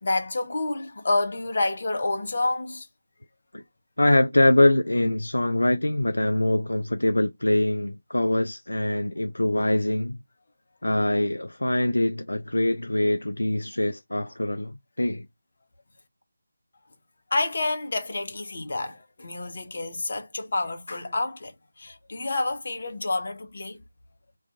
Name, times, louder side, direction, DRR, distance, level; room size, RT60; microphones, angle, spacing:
voice 1, 0.0-2.9 17.3-23.8, left 2 dB, 50° left, 0.7 m, -28 dB
voice 2, 4.0-10.2 10.8-15.3, left 1 dB, 75° left, 0.3 m, -23 dB
2.4 x 2.3 x 2.5 m
figure-of-eight pair, 160°, 0 cm